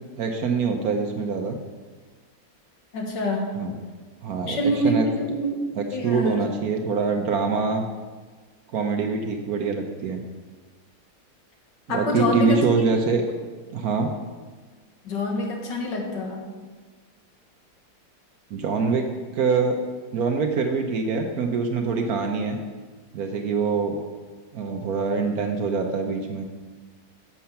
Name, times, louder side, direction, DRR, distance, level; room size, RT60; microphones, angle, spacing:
voice 1, 0.2-1.6 3.6-3.7 4.2-5.1 5.8-7.9 8.7-10.2 11.9-13.2 13.7-14.1 18.5-19.1 19.3-19.8 20.1-22.6 23.1-24.0 24.5-26.5, right 4 dB, 65° right, 4 dB, 1.1 m, -24 dB
voice 2, 2.9-3.6 4.5-5.0 5.3-5.6 5.9-6.4 11.9-12.6 15.0-16.4, equal, 70° left, 1 dB, 2.0 m, -26 dB
7.5 x 6.9 x 5.7 m, 1.4 s
omnidirectional pair, 2.0 m